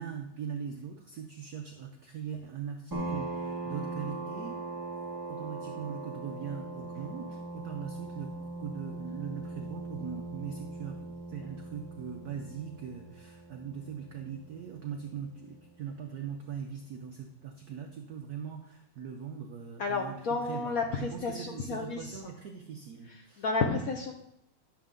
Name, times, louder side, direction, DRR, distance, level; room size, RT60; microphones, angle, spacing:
voice 1, 0.0-4.6 5.3-8.3 8.6-23.4, right 7 dB, 65° right, 3 dB, 1.0 m, -41 dB
sound 1, 2.9-16.2, right 2 dB, 10° right, 1.2 m, -40 dB
voice 2, 19.8-22.2 23.4-24.1, left 4 dB, 80° left, 3 dB, 0.7 m, -31 dB
10.0 x 6.7 x 3.7 m, 0.78 s
omnidirectional pair, 2.4 m